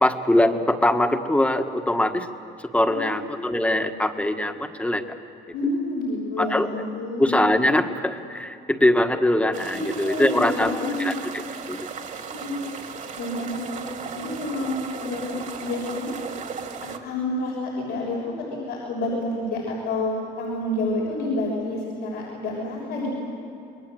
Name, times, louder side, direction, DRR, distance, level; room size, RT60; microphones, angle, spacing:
voice 1, 0.0-2.3 2.7-5.0 6.4-6.7 7.2-10.7 11.0-11.1 11.7-11.9, left 1 dB, 10° left, 6 dB, 1.6 m, -22 dB
voice 2, 2.9-3.5 5.5-7.4 9.7-11.1 12.4-12.5 13.2-13.8 14.1-16.2 16.8-23.1, left 2 dB, 85° left, -3 dB, 6.6 m, -29 dB
sound 1, 9.5-17.0, right 6 dB, 50° right, 2.6 m, -36 dB
28.5 x 21.5 x 8.0 m, 2.7 s
cardioid pair, 110°, 17 cm